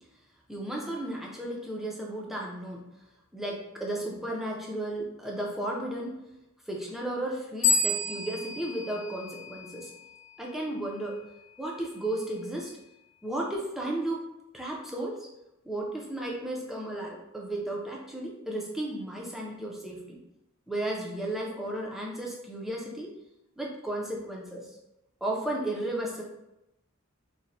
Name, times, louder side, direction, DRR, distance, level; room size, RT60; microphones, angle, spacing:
voice 1, 0.5-2.8 3.3-6.2 6.7-9.9 10.4-11.2 11.6-12.7 13.2-14.3 14.5-15.3 15.6-20.2 20.7-23.1 23.6-24.8 25.2-26.2, right 1 dB, ahead, -2 dB, 0.5 m, -34 dB
sound 1, 7.6-10.1, left 3 dB, 40° left, 0.9 m, -29 dB
4.1 x 2.1 x 2.6 m, 0.88 s
head